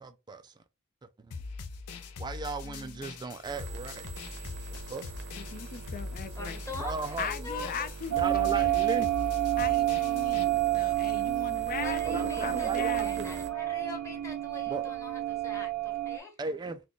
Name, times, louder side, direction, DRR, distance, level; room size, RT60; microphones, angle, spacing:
voice 1, 0.0-0.5 1.3-1.4 2.2-4.0 4.9-5.0 6.8-7.3 8.2-9.1 12.1-13.3 14.7-14.9 16.4-16.8, right 3 dB, 20° right, 0.3 m, -36 dB
sound 1, 1.3-10.4, left 4 dB, 85° left, 0.6 m, -42 dB
voice 2, 2.6-3.0 5.4-6.6 7.2-8.8 9.6-13.4, left 5 dB, 40° left, 0.5 m, -39 dB
sound 2, 3.4-13.5, right 3 dB, 55° right, 0.7 m, -44 dB
voice 3, 6.3-7.9 10.8-10.9 11.8-16.4, left 2 dB, 15° left, 1.1 m, -43 dB
sound 3, 8.1-16.2, right 15 dB, 85° right, 0.4 m, -29 dB
4.1 x 2.3 x 3.1 m
head